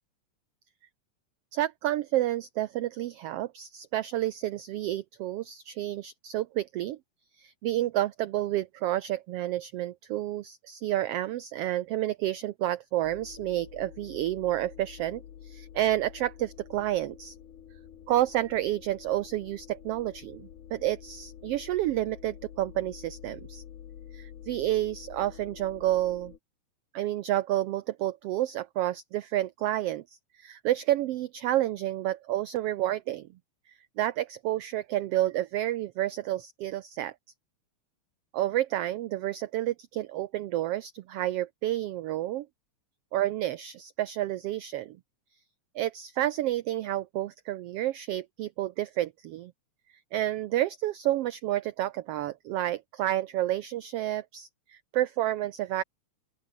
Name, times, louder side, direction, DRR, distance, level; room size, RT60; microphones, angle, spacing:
voice 1, 1.5-7.0 7.4-17.4 18.1-23.6 24.1-26.3 26.9-30.0 30.3-33.3 34.0-37.1 38.3-42.5 43.1-45.0 45.7-49.5 50.1-55.8, right 14 dB, 75° right, 1.4 m, -30 dB
sound 1, 13.0-26.4, left 9 dB, 85° left, 3.4 m, -48 dB
open air
omnidirectional pair, 3.4 m